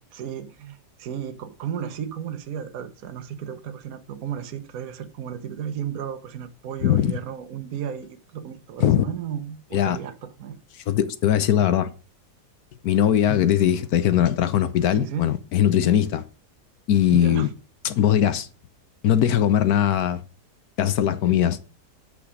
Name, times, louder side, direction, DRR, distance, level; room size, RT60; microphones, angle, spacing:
voice 1, 0.1-10.6 14.9-15.3 17.1-17.5, right 8 dB, 60° right, 1.2 m, -34 dB
voice 2, 6.8-7.1 8.8-9.0 9.7-10.0 10.9-11.9 12.8-16.2 16.9-17.5 17.8-18.5 19.0-20.2 20.8-21.6, left 10 dB, 70° left, 1.2 m, -20 dB
8.3 x 6.2 x 4.9 m
omnidirectional pair, 1.8 m